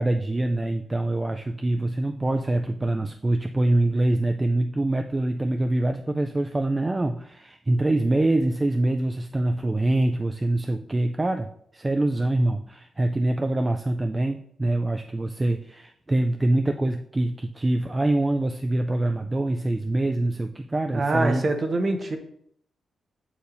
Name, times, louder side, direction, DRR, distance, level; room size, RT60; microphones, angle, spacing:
voice 1, 0.0-21.4, right 2 dB, 20° right, 6 dB, 0.3 m, -24 dB
voice 2, 20.9-22.2, right 2 dB, 35° right, 5 dB, 0.9 m, -24 dB
6.9 x 6.6 x 2.6 m, 0.69 s
wide cardioid pair, 130°, 0 cm